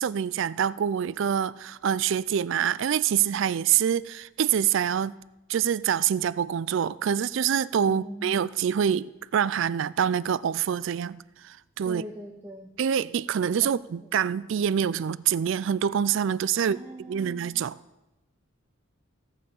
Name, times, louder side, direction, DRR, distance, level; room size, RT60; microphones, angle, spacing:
voice 1, 0.0-5.1 5.5-11.2 11.4-12.0 12.8-16.8 17.1-17.7, right 8 dB, 60° right, 0.3 m, -26 dB
voice 2, 7.9-8.5 11.8-12.7 13.6-14.2 16.6-17.6, equal, 10° right, 0.8 m, -42 dB
15.5 x 5.6 x 6.9 m
head